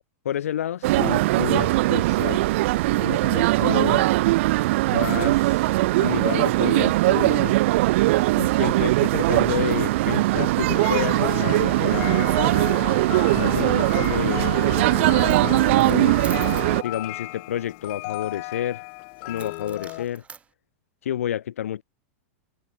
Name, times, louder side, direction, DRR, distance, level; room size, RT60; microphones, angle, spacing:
voice 1, 0.2-2.4 3.0-4.1 4.9-5.7 6.0-7.5 8.3-12.3 13.3-16.2 16.8-18.8 19.3-20.2 21.0-21.8, left 10 dB, 85° left, 5.8 m, -30 dB
sound 1, 0.8-16.8, right 19 dB, 60° right, 0.7 m, -20 dB
sound 2, 10.7-20.1, left 40 dB or more, 50° left, 2.8 m, -34 dB
Coin (dropping), 14.8-14.9 15.2-16.7 19.4-20.5, right 6 dB, 15° right, 7.7 m, -44 dB
supercardioid pair, 135°, 7 cm